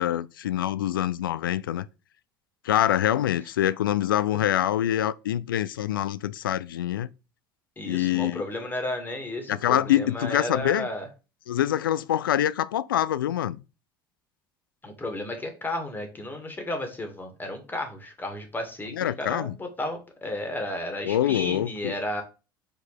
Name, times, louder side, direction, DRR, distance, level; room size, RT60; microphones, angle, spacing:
voice 1, 0.0-1.9 2.6-7.1 7.9-8.4 9.5-10.9 11.5-13.6 18.9-19.6 21.0-21.9, left 12 dB, 70° left, 0.4 m, -25 dB
voice 2, 7.8-11.1 14.8-22.2, left 1 dB, 15° left, 2.0 m, -33 dB
5.1 x 4.6 x 4.6 m
figure-of-eight pair, 70°, 12 cm